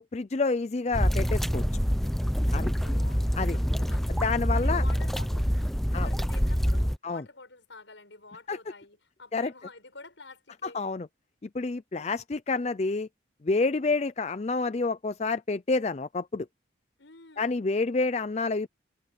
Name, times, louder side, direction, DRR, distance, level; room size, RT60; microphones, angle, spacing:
voice 1, 0.0-1.6 2.5-2.7 3.4-3.6 4.1-4.8 5.9-6.1 7.0-7.2 8.5-8.6 9.3-9.5 10.6-11.1 11.5-13.1 13.4-16.5 17.4-18.7, left 3 dB, 35° left, 0.4 m, -28 dB
sound 1, 0.9-7.0, equal, ahead, 0.7 m, -26 dB
voice 2, 2.6-3.2 3.5-4.2 4.5-5.7 5.9-10.8 17.0-17.6, left 3 dB, 75° left, 6.6 m, -49 dB
head